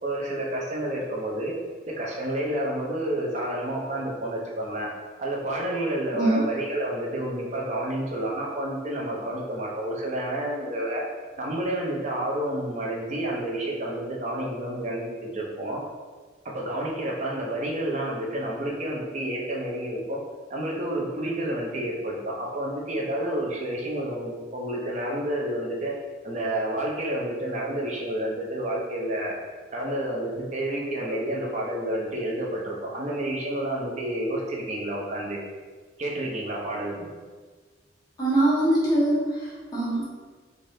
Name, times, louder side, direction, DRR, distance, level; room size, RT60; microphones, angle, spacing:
voice 1, 0.0-1.5 1.8-4.9 5.2-11.1 11.4-15.8 16.4-20.2 20.5-25.9 26.2-29.4 29.7-35.4 36.0-37.1, right 1 dB, 40° right, -2 dB, 0.5 m, -29 dB
voice 2, 38.2-40.1, right 1 dB, 20° left, -10 dB, 1.1 m, -23 dB
3.2 x 2.5 x 2.6 m, 1.4 s
head